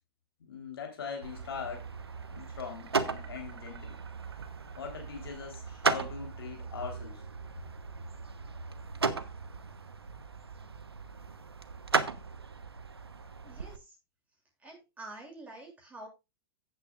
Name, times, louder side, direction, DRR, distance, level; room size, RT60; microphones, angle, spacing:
voice 1, 0.4-1.8 2.3-4.0 4.8-7.2, left 6 dB, 75° left, 3 dB, 3.7 m, -41 dB
sound 1, 1.2-13.8, right 4 dB, 90° right, 1.0 m, -36 dB
sound 2, 1.8-8.9, right 9 dB, 65° right, 3.6 m, -58 dB
voice 2, 13.4-14.0 14.6-16.1, right 2 dB, 10° right, -1 dB, 6.9 m, -47 dB
15.0 x 8.4 x 2.5 m, 0.25 s
hypercardioid pair, 100°, 13 cm